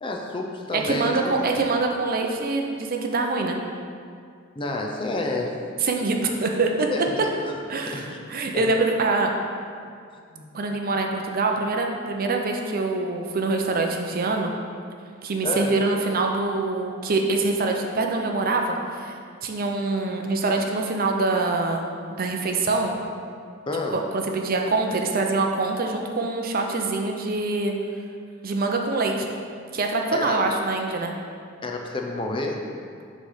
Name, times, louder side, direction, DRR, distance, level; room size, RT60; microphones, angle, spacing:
voice 1, 0.0-1.5 4.6-5.6 6.9-7.6 7.9-8.2 8.5-8.7 10.3-10.5 15.4-15.7 23.7-24.0 30.1-30.4 31.6-32.6, left 2 dB, 25° left, 1 dB, 0.5 m, -29 dB
voice 2, 0.7-3.6 5.8-6.9 7.7-9.3 10.5-14.5 15.2-21.8 22.2-23.0 23.9-27.7 28.4-29.3 29.7-31.1, right 3 dB, 45° right, 2 dB, 0.5 m, -24 dB
6.2 x 3.3 x 5.5 m, 2.2 s
head